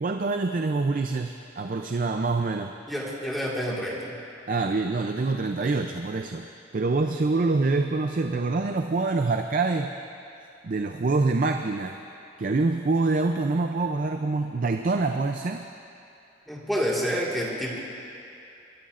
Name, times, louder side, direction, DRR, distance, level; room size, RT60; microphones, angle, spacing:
voice 1, 0.0-2.7 4.5-6.5 6.7-9.9 10.6-12.0 12.4-15.6, right 3 dB, 45° right, 5 dB, 0.4 m, -25 dB
voice 2, 2.9-4.1 16.5-17.8, equal, ahead, -5 dB, 1.8 m, -28 dB
26.0 x 12.5 x 2.5 m, 2.6 s
head